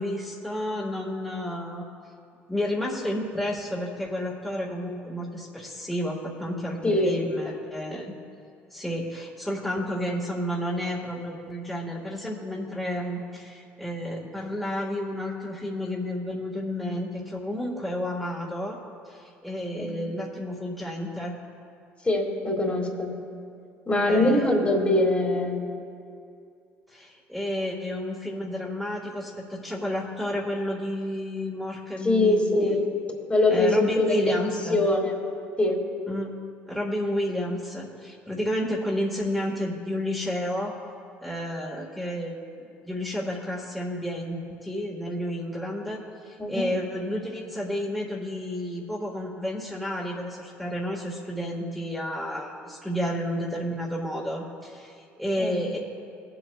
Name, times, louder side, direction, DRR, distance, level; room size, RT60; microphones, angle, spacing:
voice 1, 0.0-1.8 2.5-8.1 8.7-18.8 19.1-21.3 24.1-24.5 26.9-32.8 33.5-34.8 36.1-36.3 36.7-40.7 41.2-42.4 42.8-55.8, left 1 dB, 5° left, -4 dB, 1.7 m, -31 dB
voice 2, 6.8-7.1 19.8-19.9 22.0-23.2 23.9-25.7 32.0-32.8 33.3-34.3 34.7-35.1 35.6-35.8 46.4-46.7 55.4-55.6, left 2 dB, 25° left, 0 dB, 2.2 m, -23 dB
20.5 x 7.8 x 2.4 m, 2.4 s
hypercardioid pair, 70°, 6 cm